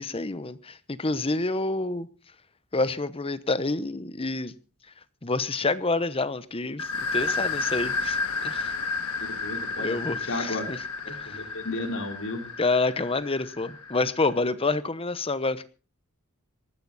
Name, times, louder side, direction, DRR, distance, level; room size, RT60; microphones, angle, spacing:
voice 1, 0.0-2.1 2.7-4.5 5.2-8.2 8.4-8.7 9.8-10.8 11.1-11.4 12.6-15.6, left 3 dB, 25° left, 15 dB, 0.9 m, -28 dB
sound 1, 6.8-14.3, left 4 dB, 80° left, 2.1 m, -32 dB
voice 2, 9.2-10.0 10.2-10.7 11.0-12.4, left 2 dB, 60° left, 3 dB, 4.1 m, -33 dB
19.5 x 14.5 x 4.1 m, 0.35 s
head